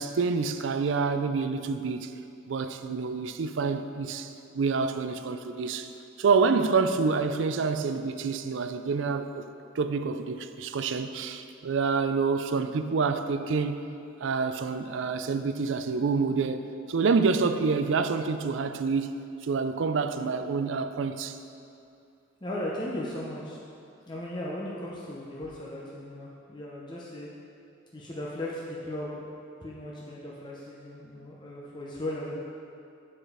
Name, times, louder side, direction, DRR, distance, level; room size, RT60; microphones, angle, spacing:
voice 1, 0.0-2.1 2.5-5.9 6.2-9.5 9.8-13.9 14.2-21.4, right 4 dB, 70° right, 0.4 m, -27 dB
voice 2, 22.4-23.6 24.1-27.3 27.9-29.2 29.6-32.3, left 1 dB, 25° left, 0.7 m, -37 dB
8.8 x 4.9 x 4.9 m
head